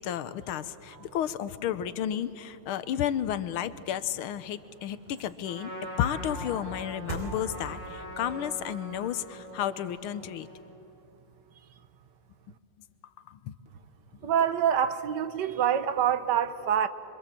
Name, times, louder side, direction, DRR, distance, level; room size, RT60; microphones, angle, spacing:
voice 1, 0.0-10.5 13.3-13.5 14.2-14.3, left 10 dB, 75° left, 1.6 m, -32 dB
sound 1, 4.3-10.6 11.0-11.1, right 2 dB, 25° right, 4.6 m, -45 dB
Trumpet, 5.4-10.7, equal, 90° right, 9.0 m, -43 dB
voice 2, 14.2-16.9, right 9 dB, 60° right, 1.4 m, -26 dB
26.0 x 24.5 x 7.6 m
omnidirectional pair, 2.4 m